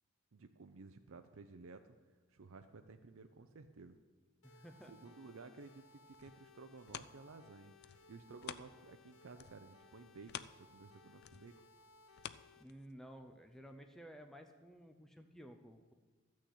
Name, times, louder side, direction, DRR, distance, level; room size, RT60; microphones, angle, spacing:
voice 1, 0.3-2.0 2.3-4.0 4.9-11.5, right 4 dB, 70° right, 7 dB, 0.5 m, -55 dB
sound 1, 4.4-12.6, left 3 dB, 80° left, 1.1 m, -63 dB
voice 2, 4.4-4.9 12.6-15.9, equal, ahead, 5 dB, 0.6 m, -54 dB
sound 2, 6.1-9.1 9.3-13.2 13.7-13.8, left 9 dB, 50° left, 0.4 m, -51 dB
13.0 x 6.4 x 8.3 m, 1.3 s
head